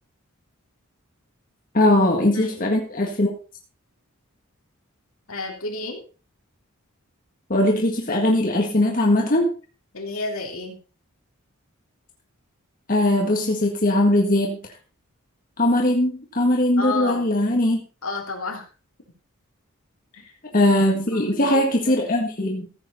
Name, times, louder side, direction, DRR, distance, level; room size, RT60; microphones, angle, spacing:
voice 1, 1.7-3.3 7.5-9.5 12.9-14.6 15.6-17.8 20.5-22.7, left 1 dB, 40° left, 0 dB, 1.7 m, -20 dB
voice 2, 2.3-2.9 5.3-6.0 9.9-10.8 16.8-17.3 18.0-18.7 20.1-20.3 21.1-21.5 21.8-22.1, left 3 dB, 75° left, 2 dB, 3.0 m, -31 dB
14.5 x 8.1 x 4.1 m, 0.35 s
head